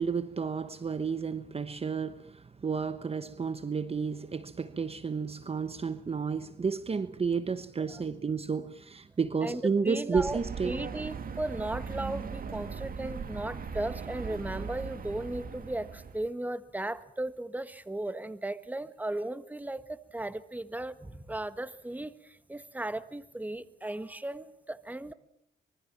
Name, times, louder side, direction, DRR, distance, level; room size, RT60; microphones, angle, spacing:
voice 1, 0.0-10.8, right 5 dB, 30° right, 1.1 m, -31 dB
voice 2, 9.4-25.1, right 1 dB, 10° right, 1.5 m, -36 dB
sound 1, 10.1-16.3, right 6 dB, 45° right, 2.4 m, -39 dB
25.5 x 23.0 x 7.4 m
cardioid pair, 90°, 20 cm